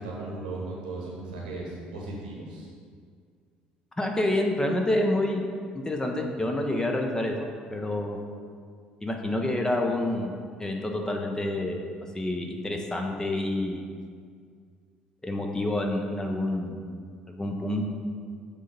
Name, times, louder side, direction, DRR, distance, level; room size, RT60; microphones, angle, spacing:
voice 1, 0.0-2.7, right 2 dB, 75° right, -3 dB, 1.3 m, -36 dB
voice 2, 4.0-5.5 5.8-8.2 9.0-11.8 12.1-13.8 15.2-16.8 17.3-17.8, left 1 dB, 15° left, 2 dB, 0.8 m, -28 dB
6.6 x 3.9 x 5.2 m, 2.1 s
figure-of-eight pair, 50°, 5 cm